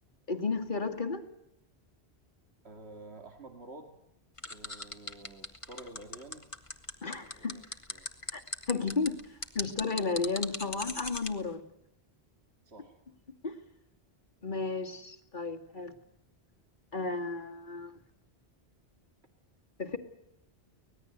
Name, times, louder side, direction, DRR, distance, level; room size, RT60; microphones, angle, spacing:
voice 1, 0.3-1.2 7.0-7.6 8.3-8.4 8.7-9.2 9.5-11.7 13.4-13.6 14.4-15.9 16.9-17.9 19.8-20.0, left 4 dB, 45° left, 2.2 m, -33 dB
voice 2, 2.6-4.0 4.5-6.5 7.3-7.6 7.9-8.1 12.7-13.0, right 2 dB, 75° right, 2.5 m, -49 dB
sound 1, 4.4-11.3, left 2 dB, 30° left, 1.9 m, -38 dB
25.0 x 19.5 x 8.0 m
omnidirectional pair, 1.1 m